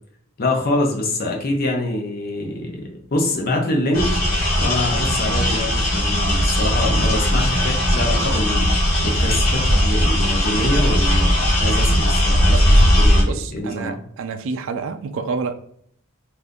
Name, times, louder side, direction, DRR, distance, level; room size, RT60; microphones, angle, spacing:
voice 1, 0.4-4.1 4.6-8.7 9.0-14.0, left 1 dB, 45° left, 0 dB, 0.7 m, -25 dB
sound 1, 3.9-13.2, equal, 70° left, 1.2 m, -18 dB
voice 2, 13.2-15.5, right 4 dB, 60° right, 7 dB, 0.3 m, -28 dB
3.6 x 2.5 x 2.6 m, 0.64 s
head